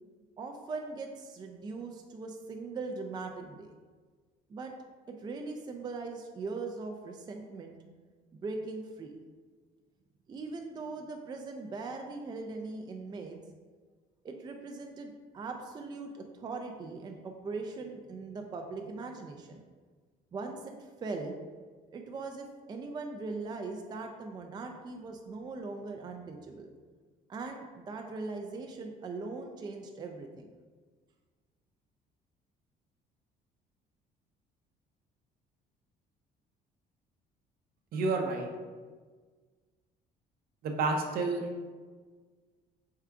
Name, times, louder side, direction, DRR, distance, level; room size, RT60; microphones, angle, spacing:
voice 1, 0.4-3.7 4.5-4.7 5.1-7.8 8.3-9.1 10.3-13.4 14.2-19.6 20.3-21.4 21.9-26.7 27.3-30.5, right 3 dB, 25° right, 3 dB, 0.3 m, -40 dB
voice 2, 37.9-38.5 40.6-41.4, right 3 dB, 65° right, 3 dB, 0.6 m, -29 dB
3.6 x 2.3 x 4.5 m, 1.5 s
cardioid pair, 110°, 17 cm